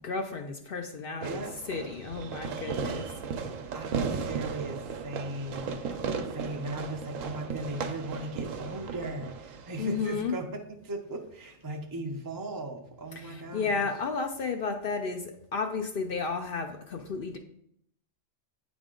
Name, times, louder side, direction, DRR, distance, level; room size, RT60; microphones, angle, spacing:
voice 1, 0.0-1.4 1.7-3.1 9.8-10.4 13.2-17.4, left 4 dB, 60° left, 5 dB, 0.6 m, -32 dB
voice 2, 1.2-1.6 3.7-5.8 6.2-13.9, right 2 dB, 30° right, 2 dB, 0.4 m, -38 dB
Fireworks, 1.2-10.2, right 5 dB, 80° right, 1.0 m, -36 dB
8.8 x 3.5 x 3.7 m, 0.72 s
omnidirectional pair, 1.3 m